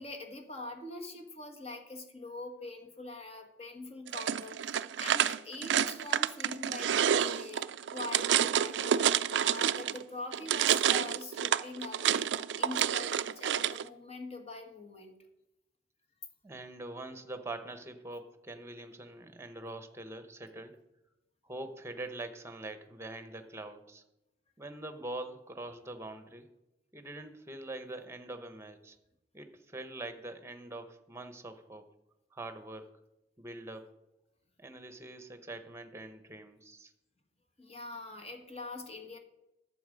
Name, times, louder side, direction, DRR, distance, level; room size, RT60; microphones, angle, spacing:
voice 1, 0.0-15.2 37.6-39.2, left 2 dB, 35° left, 4 dB, 1.5 m, -44 dB
sound 1, 4.1-10.0 10.3-13.8, right 9 dB, 70° right, 0.4 m, -29 dB
voice 2, 16.4-20.8 21.4-24.0 24.6-26.5 26.9-28.9 29.3-31.9 32.3-32.9 33.4-34.0 34.6-36.9, right 2 dB, 15° right, 8 dB, 1.0 m, -44 dB
12.0 x 7.5 x 5.2 m, 0.92 s
head